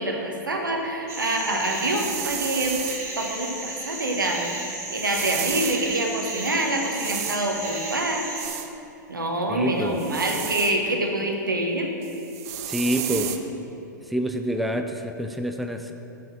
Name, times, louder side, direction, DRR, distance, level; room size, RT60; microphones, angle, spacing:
voice 1, 0.0-2.8 3.2-4.6 4.9-8.4 9.1-11.9 13.0-13.2, right 1 dB, 85° right, 2 dB, 1.2 m, -26 dB
sound 1, 1.1-8.5, right 3 dB, 25° right, 1.4 m, -34 dB
sound 2, 1.8-3.0 5.0-5.8 6.9-7.4 8.4-8.7 10.0-10.8 12.0-13.4, right 11 dB, 50° right, 0.6 m, -32 dB
voice 2, 9.5-9.9 12.7-13.3 14.1-15.9, right 1 dB, ahead, 5 dB, 0.4 m, -27 dB
6.9 x 5.9 x 5.7 m, 2.9 s
figure-of-eight pair, 105°, 10 cm